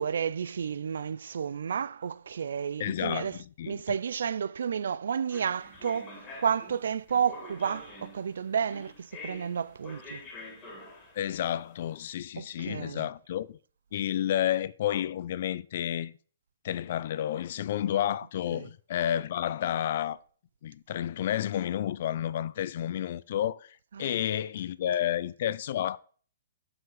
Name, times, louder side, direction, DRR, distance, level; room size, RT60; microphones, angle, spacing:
voice 1, 0.0-3.4 3.7-10.2 12.4-13.1 18.5-18.7 24.0-24.2, right 7 dB, 65° right, 0.4 m, -31 dB
voice 2, 2.8-3.8 11.2-13.6 13.9-16.1 16.6-20.2 20.6-26.0, left 11 dB, 40° left, 0.5 m, -31 dB
sound 1, 5.3-12.0, left 2 dB, 15° left, 2.3 m, -47 dB
7.8 x 5.9 x 6.4 m
hypercardioid pair, 175°, 0 cm